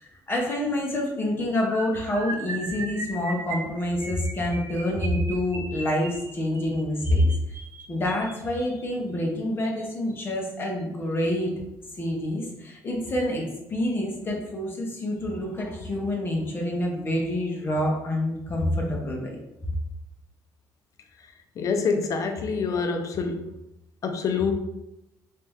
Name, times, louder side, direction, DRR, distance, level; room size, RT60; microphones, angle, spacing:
voice 1, 0.0-7.3 7.9-11.5 12.0-19.3, left 1 dB, 30° left, 0 dB, 1.0 m, -27 dB
sound 1, 1.6-8.8 9.6-9.8 10.1-10.3 10.6-10.8, right 2 dB, 35° right, 0.8 m, -38 dB
voice 2, 21.6-23.5 24.0-24.5, left 5 dB, 50° left, 5 dB, 0.6 m, -26 dB
3.4 x 2.9 x 3.5 m, 0.88 s
cardioid pair, 110°, 7 cm